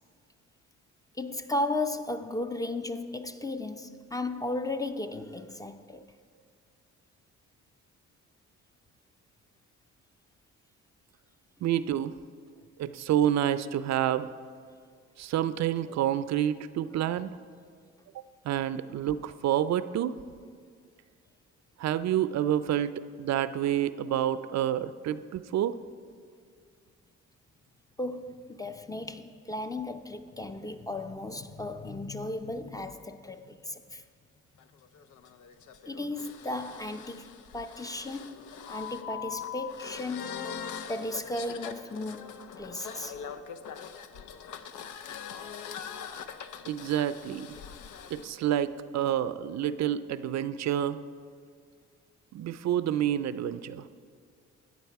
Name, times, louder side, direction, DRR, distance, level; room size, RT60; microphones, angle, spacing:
voice 1, 1.2-6.1 28.0-34.0 35.9-40.5 40.9-43.2, left 2 dB, 10° left, 0.5 m, -35 dB
voice 2, 11.6-12.2 12.8-14.3 15.2-17.3 18.1-20.2 21.8-25.8 46.6-47.6 48.1-51.0 52.3-53.9, right 11 dB, 65° right, 0.5 m, -28 dB
sound 1, 34.6-48.3, left 8 dB, 85° left, 0.7 m, -42 dB
13.5 x 9.1 x 4.7 m
cardioid pair, 90°, 30 cm